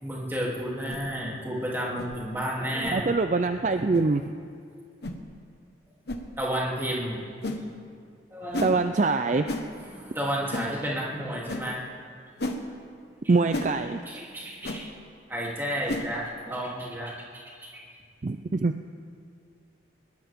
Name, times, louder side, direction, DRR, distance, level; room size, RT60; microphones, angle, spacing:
voice 1, 0.0-3.1 3.7-3.9 6.4-7.2 8.3-8.6 9.8-11.8 14.0-14.9 15.3-17.8, equal, 10° right, -5 dB, 2.9 m, -32 dB
sound 1, 0.9-1.1 2.0-2.2 2.8-3.0 3.9-4.1 5.0-5.2 6.1-6.2 7.4-7.6 8.5-8.8 9.5-9.7 10.5-10.7 11.5-11.7 12.4-12.6 13.5-13.7 14.6-14.8 15.9-16.1, left 1 dB, 60° left, 1.2 m, -32 dB
voice 2, 2.9-4.3 8.6-9.4 13.3-14.0 18.2-18.7, right 3 dB, 40° right, 7 dB, 0.4 m, -24 dB
21.0 x 18.5 x 3.6 m, 2.2 s
head